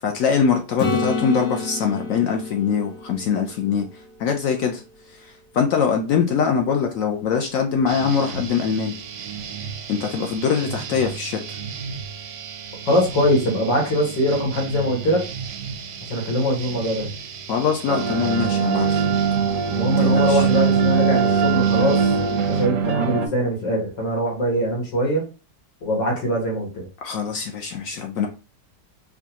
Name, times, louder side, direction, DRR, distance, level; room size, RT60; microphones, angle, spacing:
voice 1, 0.0-3.8 4.2-4.8 5.5-8.9 9.9-11.6 17.5-19.0 20.0-20.5 27.0-28.3, left 6 dB, 75° left, 0.8 m, -22 dB
Acoustic guitar / Strum, 0.8-4.6 9.4-9.5, left 3 dB, 60° left, 1.4 m, -30 dB
sound 1, 7.9-22.7, right 6 dB, 85° right, 1.3 m, -35 dB
voice 2, 12.9-15.2 16.0-17.1 19.7-22.0 22.5-25.2 25.8-26.8, equal, 90° left, 2.2 m, -22 dB
sound 2, 17.9-23.3, right 6 dB, 65° right, 0.8 m, -20 dB
4.6 x 2.3 x 2.8 m
omnidirectional pair, 1.9 m